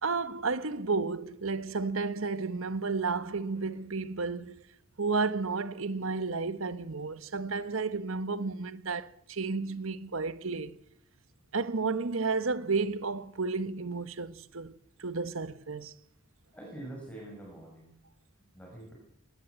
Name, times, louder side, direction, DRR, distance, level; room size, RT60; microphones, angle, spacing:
voice 1, 0.0-4.6 5.0-10.8 11.5-15.9, right 4 dB, 70° right, 1.1 m, -32 dB
voice 2, 16.5-17.9 18.5-18.9, right 1 dB, 5° left, 6.2 m, -44 dB
20.0 x 18.5 x 8.1 m
head